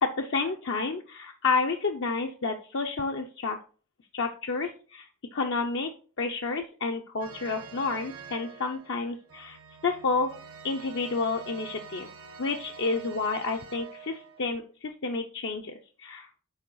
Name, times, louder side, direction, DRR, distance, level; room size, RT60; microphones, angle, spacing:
voice 1, 0.0-3.6 4.1-5.9 6.2-9.6 9.8-10.3 10.6-12.1 12.4-16.3, left 4 dB, 55° left, 3 dB, 0.6 m, -30 dB
sound 1, 7.2-14.5, right 6 dB, 75° right, 1.1 m, -46 dB
7.1 x 4.8 x 3.9 m, 0.39 s
head